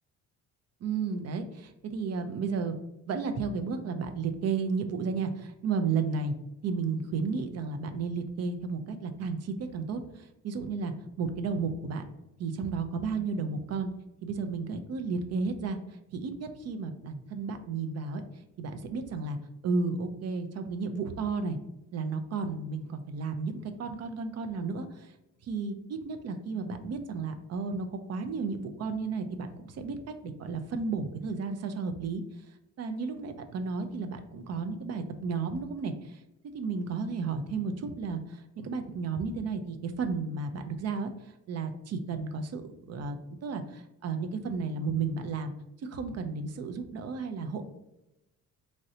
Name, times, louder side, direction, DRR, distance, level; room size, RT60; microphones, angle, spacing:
voice 1, 0.8-2.7 3.1-6.3 6.6-12.0 12.4-13.9 14.2-15.8 16.1-18.2 18.6-19.4 19.6-21.6 21.9-25.1 25.4-32.2 32.8-36.2 36.5-41.1 41.5-43.2 43.4-45.5 45.8-47.6, right 4 dB, 55° right, 7 dB, 0.5 m, -33 dB
3.1 x 2.6 x 2.6 m, 0.93 s
cardioid pair, 90°, 30 cm